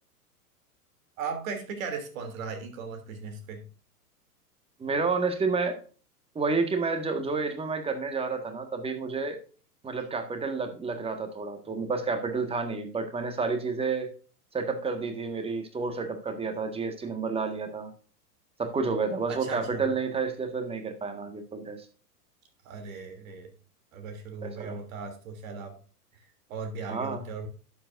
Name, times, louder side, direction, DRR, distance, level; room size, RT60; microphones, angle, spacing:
voice 1, 1.2-3.7 19.3-19.8 22.6-23.5 23.9-25.8 26.1-27.5, right 5 dB, 55° right, 5 dB, 3.0 m, -37 dB
voice 2, 4.8-5.8 6.4-9.4 9.8-14.1 14.5-17.9 18.6-21.9 24.4-24.8 26.9-27.2, right 4 dB, 10° right, 6 dB, 1.6 m, -30 dB
11.5 x 8.0 x 2.6 m, 0.38 s
hypercardioid pair, 110°, 47 cm